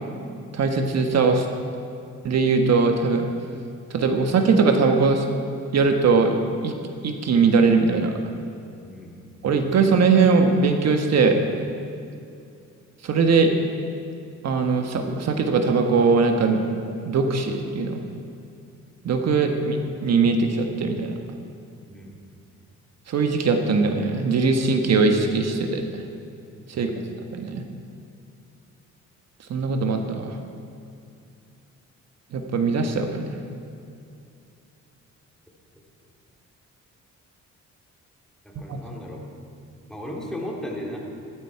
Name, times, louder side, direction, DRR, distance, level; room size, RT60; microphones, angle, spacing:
voice 1, 0.5-1.4 2.2-3.3 3.9-5.3 5.7-6.3 6.6-6.7 7.0-8.2 9.4-11.4 13.0-13.5 14.4-16.6 17.1-18.0 19.0-21.1 23.1-25.8 26.7-26.9 27.3-27.6 29.5-30.3 32.3-33.4 38.5-38.8, right 4 dB, 60° right, 5 dB, 1.4 m, -20 dB
voice 2, 8.8-9.2 21.9-22.2 26.7-27.0 38.4-39.2 39.9-41.0, equal, ahead, -3 dB, 2.9 m, -35 dB
14.5 x 12.0 x 4.7 m, 2.5 s
cardioid pair, 90°, 30 cm